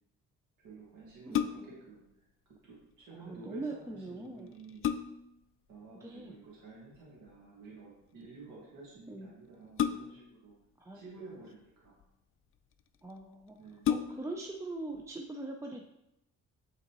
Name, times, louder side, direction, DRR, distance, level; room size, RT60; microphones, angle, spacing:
voice 1, 0.6-2.1 2.6-4.9 5.7-10.5 10.9-12.1 13.6-13.9, right 4 dB, 80° right, -6 dB, 1.9 m, -51 dB
sound 1, 1.1-1.9 3.9-4.0 4.5-5.4 6.9-7.3 9.8-10.4 11.3-12.0 12.8-12.9 13.2-13.3 13.8-14.5 14.9-15.0, left 9 dB, 45° left, 0.4 m, -33 dB
voice 2, 1.3-1.7 3.1-4.5 6.0-6.3 9.1-9.3 10.8-11.0 13.0-13.6 13.9-15.8, right 2 dB, 10° right, 2 dB, 0.5 m, -42 dB
8.0 x 3.9 x 3.0 m, 0.85 s
cardioid pair, 90°, 30 cm